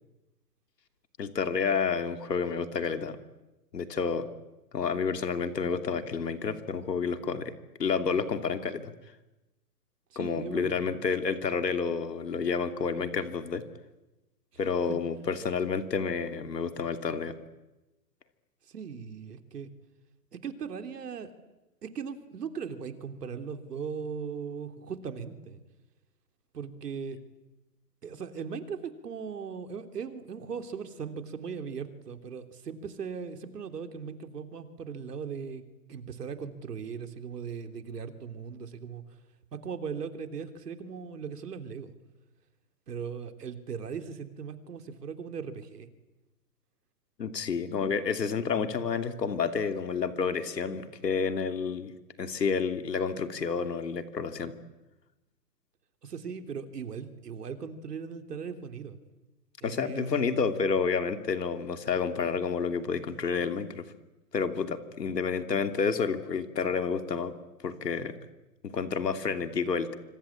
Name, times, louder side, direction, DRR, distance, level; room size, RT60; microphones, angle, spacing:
voice 1, 1.2-3.2 3.7-4.3 4.7-7.5 7.8-8.9 10.2-13.6 14.6-17.3 47.2-51.9 52.2-54.5 59.6-63.9 64.3-67.3 67.6-68.1 68.6-70.0, left 5 dB, 85° left, 8 dB, 3.0 m, -30 dB
voice 2, 10.1-11.0 14.9-15.0 18.7-19.7 20.4-21.3 21.8-25.6 26.5-27.2 28.0-35.6 35.9-39.0 39.5-41.9 42.9-45.9 56.0-59.0 59.6-60.2, right 6 dB, 75° right, 7 dB, 3.4 m, -38 dB
26.5 x 26.0 x 8.7 m, 1.0 s
hypercardioid pair, 150°, 48 cm